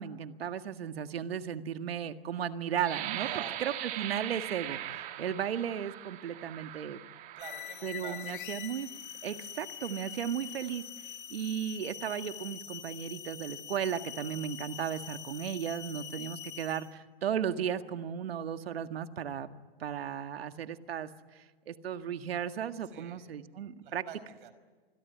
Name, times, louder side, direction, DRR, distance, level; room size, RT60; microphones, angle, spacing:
voice 1, 0.0-7.0 7.8-8.9 9.2-19.5 19.8-24.0, right 9 dB, 85° right, 9 dB, 1.9 m, -35 dB
sound 1, 2.8-8.5 9.1-9.3 9.7-10.2, right 13 dB, 25° right, 1.8 m, -41 dB
voice 2, 3.2-3.6 7.3-8.4 22.8-23.2 23.8-24.5, right 9 dB, 60° right, 12 dB, 5.0 m, -47 dB
sound 2, 7.4-17.0, left 10 dB, 60° left, 2.3 m, -44 dB
26.5 x 22.0 x 9.5 m, 1.4 s
hypercardioid pair, 150°, 29 cm